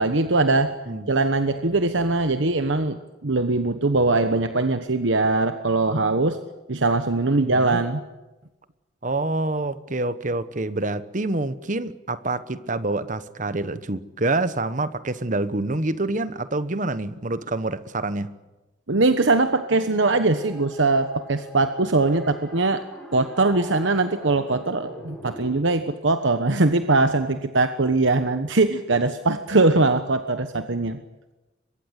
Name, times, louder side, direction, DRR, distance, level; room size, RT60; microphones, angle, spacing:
voice 1, 0.0-0.7 1.1-6.4 6.7-8.0 18.9-22.8 23.1-31.0, right 3 dB, 75° right, 1.2 m, -21 dB
voice 2, 7.4-7.8 9.0-18.3, right 2 dB, 40° right, 1.1 m, -27 dB
sound 1, 19.3-25.6, left 1 dB, 5° left, 7.7 m, -43 dB
24.0 x 22.5 x 8.2 m
head